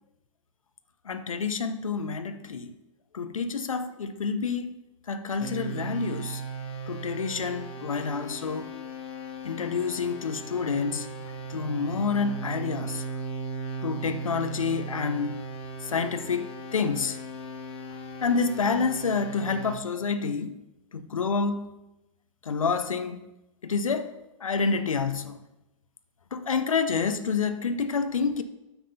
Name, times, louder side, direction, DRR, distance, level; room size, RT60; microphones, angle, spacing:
voice 1, 1.0-2.8 3.1-4.8 5.1-6.4 6.9-8.7 9.4-11.1 11.5-13.0 13.8-15.5 15.8-17.2 18.2-20.6 20.9-21.7 22.4-23.3 23.6-25.4 26.3-28.4, left 5 dB, 85° left, 0.8 m, -28 dB
sound 1, 5.4-19.8, right 3 dB, 35° left, 1.7 m, -37 dB
8.8 x 7.3 x 5.6 m
hypercardioid pair, 110°, 17 cm